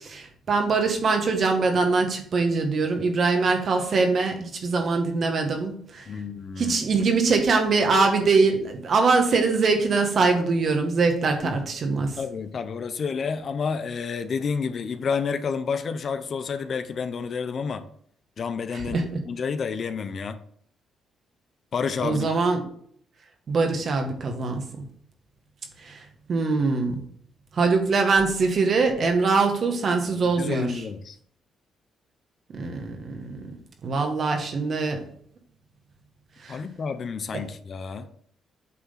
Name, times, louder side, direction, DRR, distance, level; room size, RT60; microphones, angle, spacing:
voice 1, 0.0-6.1 6.6-12.2 18.7-19.2 22.0-22.6 23.5-24.8 25.8-26.0 26.3-27.0 27.5-30.7 32.5-33.5 33.8-35.0 36.4-36.6 37.3-37.4, right 4 dB, 50° right, 4 dB, 1.7 m, -23 dB
voice 2, 6.1-6.8 11.4-11.5 12.2-17.9 18.4-20.4 21.7-22.3 30.2-31.2 36.5-38.1, left 5 dB, 50° left, 10 dB, 0.7 m, -30 dB
8.5 x 3.6 x 5.7 m, 0.62 s
cardioid pair, 90°, 0 cm